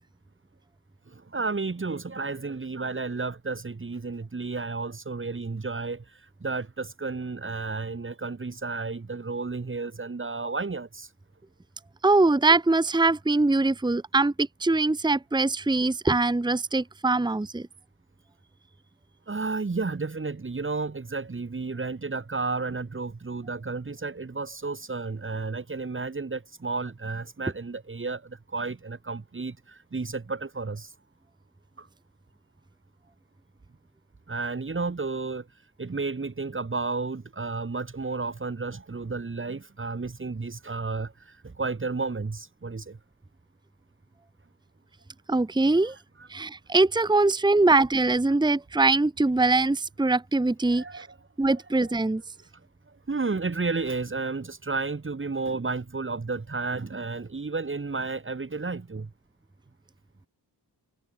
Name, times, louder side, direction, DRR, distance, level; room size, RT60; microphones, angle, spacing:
voice 1, 1.1-11.1 19.3-30.9 31.8-31.9 34.3-35.5 35.8-43.0 46.2-46.5 50.7-51.2 51.8-51.9 52.9-59.1, right 3 dB, 30° right, 3.5 m, -32 dB
voice 2, 12.0-17.7 45.3-45.9 46.3-51.1 51.4-52.2, right 3 dB, 10° right, 1.1 m, -22 dB
wide cardioid pair, 170°, 40 cm